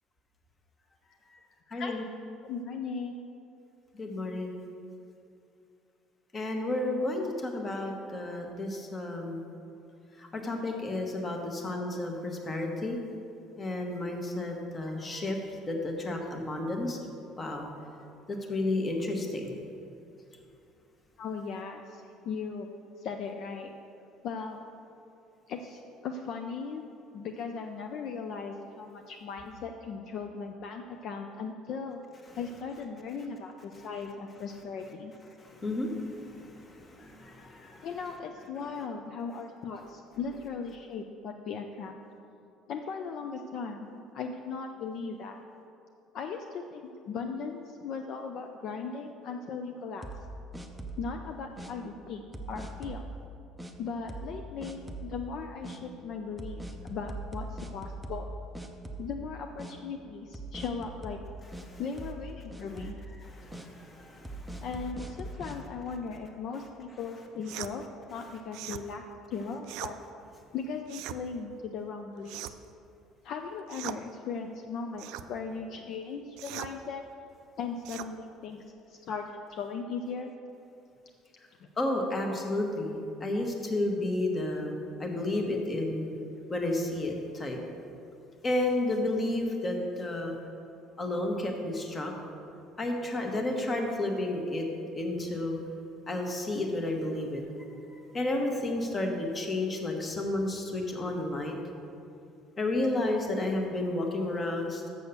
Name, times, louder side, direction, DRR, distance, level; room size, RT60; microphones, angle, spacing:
voice 1, 1.7-2.0 3.9-4.5 6.3-9.4 10.2-13.0 13.6-15.4 15.7-17.0 17.4-17.7 18.3-19.5 35.4-37.9 61.7-61.8 63.2-64.6 81.8-84.7 85.0-86.1 86.5-87.6 88.4-90.3 91.0-92.1 92.8-94.7 94.9-95.6 96.1-97.4 97.9-101.5 102.6-104.9, left 2 dB, 25° left, 2 dB, 1.1 m, -32 dB
voice 2, 2.4-3.2 21.2-22.7 23.0-23.7 24.2-24.6 25.5-26.9 27.1-32.0 32.4-35.1 37.8-41.9 42.7-45.4 46.1-50.0 51.0-52.2 52.5-53.0 53.8-58.3 59.0-61.2 61.8-63.0 64.6-67.8 68.1-70.0 70.5-72.5 73.2-77.0 77.6-80.3, left 5 dB, 55° left, 4 dB, 0.5 m, -38 dB
sound 1, 50.0-51.1 51.6-51.7 52.3-53.1 53.6-53.7 54.1-54.4 54.6-55.1 55.6-55.8 56.4-58.3 58.5-59.3 59.6-59.7 60.3-61.7 62.0-62.3 62.5-63.0 63.5-63.7 64.2-65.6, right 2 dB, 5° right, 0.6 m, -41 dB
sound 2, 67.5-67.7 68.5-68.9 69.6-70.0 70.9-71.2 72.2-72.7 73.7-74.0 75.0-75.3 76.4-76.7 77.8-78.1, right 14 dB, 75° right, 0.3 m, -40 dB
6.8 x 6.3 x 6.7 m, 2.6 s
cardioid pair, 140°, 0 cm